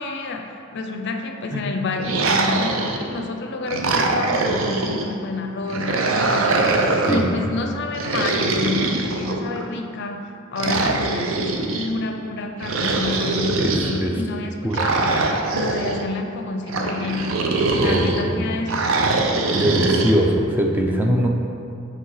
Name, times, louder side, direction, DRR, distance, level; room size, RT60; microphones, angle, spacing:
voice 1, 0.0-15.2 15.5-17.4 17.8-18.9, left 3 dB, 55° left, 4 dB, 0.5 m, -29 dB
sound 1, 2.0-3.2 3.7-5.1 5.7-7.3 7.9-9.7 10.6-11.9 12.6-14.0 14.7-16.0 16.7-18.2 18.7-20.1, right 3 dB, 75° right, 0.5 m, -22 dB
voice 2, 17.8-18.5 19.5-21.3, equal, 10° right, 0 dB, 0.4 m, -21 dB
7.3 x 3.1 x 4.8 m, 2.5 s
head